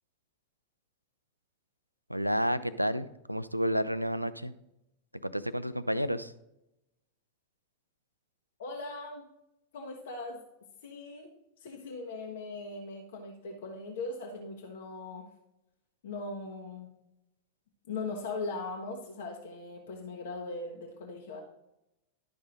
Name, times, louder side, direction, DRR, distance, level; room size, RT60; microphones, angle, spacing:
voice 1, 2.1-4.5 5.2-6.3, equal, 90° right, 14 dB, 0.4 m, -30 dB
voice 2, 8.6-9.3 9.7-10.4 10.8-11.3 11.6-15.3 16.0-16.9 17.9-21.4, left 3 dB, 60° left, 2 dB, 1.1 m, -39 dB
11.5 x 5.4 x 3.9 m, 0.85 s
figure-of-eight pair, 90°, 0 cm